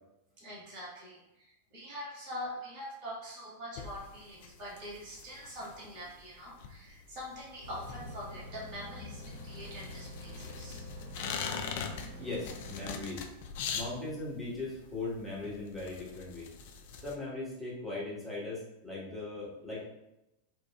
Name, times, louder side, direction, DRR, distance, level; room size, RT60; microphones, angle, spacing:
voice 1, 0.4-10.8, equal, 45° right, -5 dB, 1.3 m, -44 dB
sound 1, 3.8-17.2, left 6 dB, 50° left, 0.3 m, -43 dB
sound 2, 7.6-12.9, left 1 dB, 80° left, 0.7 m, -46 dB
voice 2, 12.2-13.2 13.7-16.5 17.0-19.8, left 2 dB, 5° right, -8 dB, 1.3 m, -39 dB
4.2 x 2.3 x 2.3 m, 0.91 s
figure-of-eight pair, 90°, 0 cm